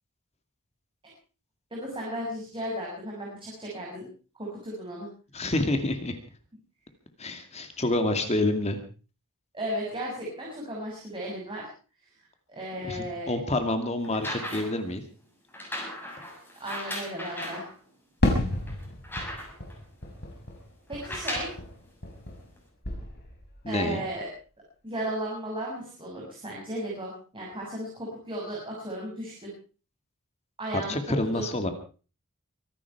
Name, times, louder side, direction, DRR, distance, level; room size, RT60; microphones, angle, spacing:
voice 1, 1.7-4.1 4.4-5.1 9.5-11.7 12.5-13.3 16.6-17.7 20.9-21.5 23.7-24.3 24.8-29.5 30.6-31.4, right 1 dB, 25° right, -4 dB, 7.0 m, -35 dB
voice 2, 5.3-6.2 7.2-8.8 12.8-15.0 23.6-24.0 30.7-31.7, left 2 dB, 30° left, 7 dB, 2.3 m, -28 dB
sound 1, 14.0-14.9 15.5-17.7 18.3-18.4 18.7-19.7 20.9-21.6 22.6-22.7, left 1 dB, 10° left, 6.8 m, -36 dB
Fireworks, 18.2-22.6 22.8-23.6, left 1 dB, 50° left, 4.9 m, -32 dB
24.5 x 12.0 x 4.7 m, 0.37 s
head